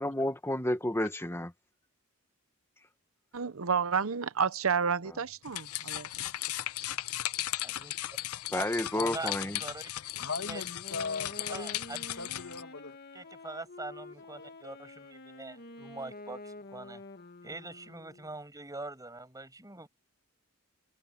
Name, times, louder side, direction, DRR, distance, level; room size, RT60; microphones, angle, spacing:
voice 1, 0.0-1.5 8.5-9.6, left 1 dB, 10° left, 1.5 m, -31 dB
voice 2, 3.3-6.1, right 6 dB, 70° right, 0.8 m, -30 dB
sound 1, 5.4-12.6, left 14 dB, 90° left, 0.6 m, -37 dB
voice 3, 7.6-7.9 8.5-8.7 8.9-9.9 10.5-10.6 11.5-12.0 13.1-17.0 17.4-19.9, right 2 dB, 15° right, 7.2 m, -43 dB
voice 4, 10.2-13.0 14.4-14.8, left 4 dB, 65° left, 2.4 m, -40 dB
Wind instrument woodwind instrument, 10.2-18.3, left 2 dB, 50° left, 2.7 m, -48 dB
head